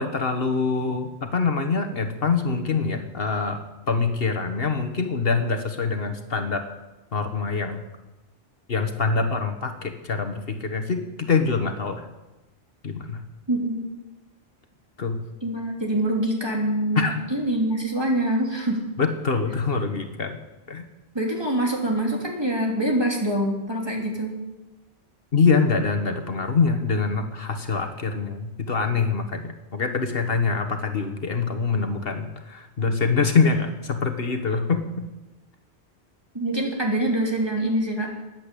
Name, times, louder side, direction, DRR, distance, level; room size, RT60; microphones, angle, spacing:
voice 1, 0.0-3.6 3.9-6.6 7.1-7.8 8.7-12.0 12.8-13.2 15.0-15.2 17.0-17.3 19.0-20.4 20.7-20.8 25.3-35.1, left 4 dB, 65° left, 6 dB, 1.5 m, -24 dB
voice 2, 13.5-13.9 15.4-18.8 21.1-24.4 36.3-38.1, right 1 dB, 25° right, 0 dB, 3.1 m, -25 dB
15.0 x 10.5 x 8.4 m, 1.1 s
omnidirectional pair, 1.1 m